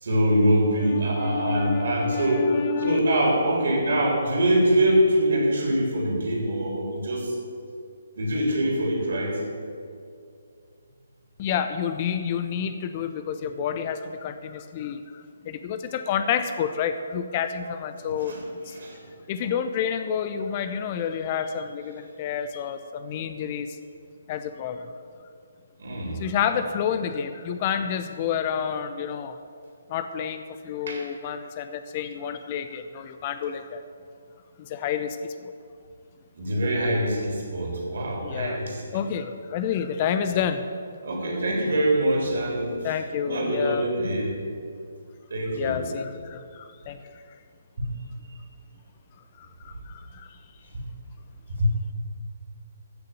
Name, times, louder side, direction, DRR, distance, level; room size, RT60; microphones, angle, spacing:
voice 1, 0.0-7.3 8.2-9.4 18.0-18.4 18.8-19.0 25.8-26.2 30.9-31.1 36.4-39.0 41.0-42.8 43.3-44.3 45.3-45.8 47.8-47.9 51.5-51.7, right 1 dB, 55° right, 0 dB, 3.6 m, -24 dB
voice 2, 0.8-3.0 11.4-18.4 18.7-18.8 19.3-23.8 24.3-24.9 26.2-29.4 29.9-33.8 34.6-35.5 38.2-38.6 38.9-40.6 42.8-43.9 45.5-47.0 49.4-50.4, left 8 dB, 30° left, 10 dB, 0.6 m, -29 dB
14.5 x 6.6 x 8.9 m, 2.3 s
figure-of-eight pair, 135°, 0 cm